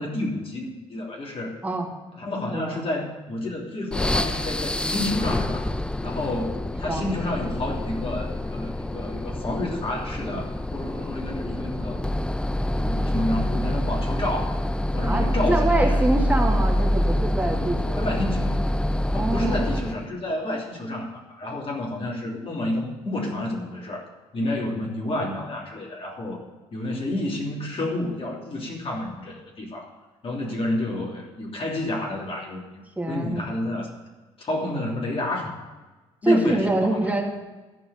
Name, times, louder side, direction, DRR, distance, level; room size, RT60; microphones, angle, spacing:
voice 1, 0.0-1.6 2.2-5.7 6.0-12.0 12.7-14.5 14.9-16.0 17.5-18.6 19.1-26.4 26.7-29.9 30.2-33.9 34.4-35.5 36.2-37.1, left 1 dB, 45° left, -2 dB, 3.1 m, -30 dB
voice 2, 2.5-2.8 6.9-7.1 15.0-18.3 19.1-19.6 30.5-30.6 33.0-33.5 36.2-37.2, right 2 dB, 10° right, 0 dB, 2.5 m, -25 dB
sound 1, 3.9-20.1, left 1 dB, 5° left, 0.5 m, -26 dB
13.5 x 4.8 x 8.7 m, 1.2 s
supercardioid pair, 60°, 13 cm